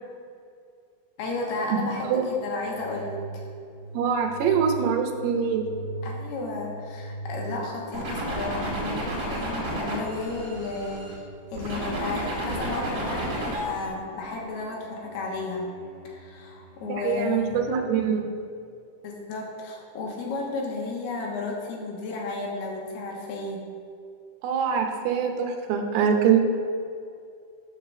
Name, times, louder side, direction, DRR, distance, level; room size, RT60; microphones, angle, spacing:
voice 1, 1.2-3.4 6.0-11.1 11.5-15.7 16.0-17.7 19.0-23.6, left 3 dB, 75° left, -1 dB, 3.0 m, -33 dB
sound 1, 2.6-18.2, right 1 dB, 60° left, 1.4 m, -42 dB
voice 2, 3.9-5.7 16.9-18.3 24.4-26.4, right 7 dB, 80° right, 3 dB, 2.8 m, -24 dB
sound 2, 7.9-11.1 11.6-13.9, right 1 dB, 40° right, 1.9 m, -32 dB
9.5 x 4.5 x 6.7 m, 2.4 s
omnidirectional pair, 4.9 m